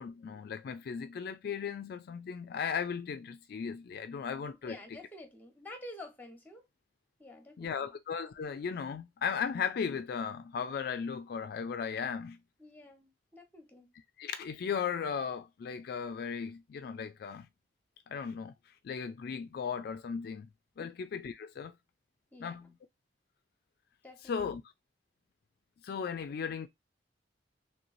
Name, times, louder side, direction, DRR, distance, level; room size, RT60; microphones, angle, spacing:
voice 1, 0.0-4.8 7.6-12.4 14.2-17.5 18.1-20.5 20.8-21.7 22.4-22.7 24.2-24.6 25.8-26.7, left 6 dB, 60° left, 0.3 m, -36 dB
voice 2, 4.6-6.6 7.2-7.9 12.6-13.9 20.8-20.9 22.3-22.7 24.0-24.4, left 1 dB, 10° left, 1.0 m, -49 dB
3.2 x 3.1 x 2.5 m
head